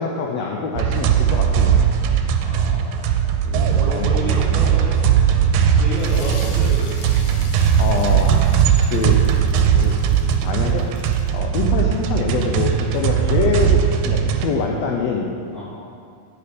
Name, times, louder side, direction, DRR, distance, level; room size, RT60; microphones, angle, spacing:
voice 1, 0.0-1.9 3.4-4.4 6.0-6.1 7.8-8.4 8.9-9.2 9.7-10.0 10.4-10.9 11.3-15.3, left 5 dB, 85° left, 0 dB, 1.5 m, -25 dB
sound 1, 0.8-14.5, right 8 dB, 85° right, 2.2 m, -18 dB
voice 2, 2.4-3.2 3.7-5.3 5.8-6.9 15.5-15.6, equal, 40° left, -9 dB, 2.1 m, -30 dB
sound 2, 5.9-11.4, left 3 dB, 65° left, 1.7 m, -42 dB
9.3 x 6.8 x 5.1 m, 2.3 s
omnidirectional pair, 3.9 m